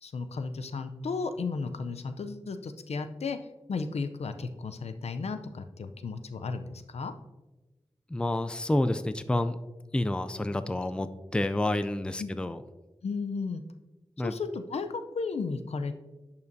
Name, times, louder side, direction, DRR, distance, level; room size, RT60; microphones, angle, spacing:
voice 1, 0.0-3.4 3.7-7.1 12.2-12.3 13.0-13.6 14.2-16.0, left 4 dB, 85° left, 9 dB, 0.5 m, -34 dB
voice 2, 8.1-9.6 9.9-12.6 14.2-14.3, left 1 dB, 10° left, 11 dB, 0.3 m, -29 dB
10.5 x 5.6 x 2.6 m, 1.1 s
wide cardioid pair, 100°, 11 cm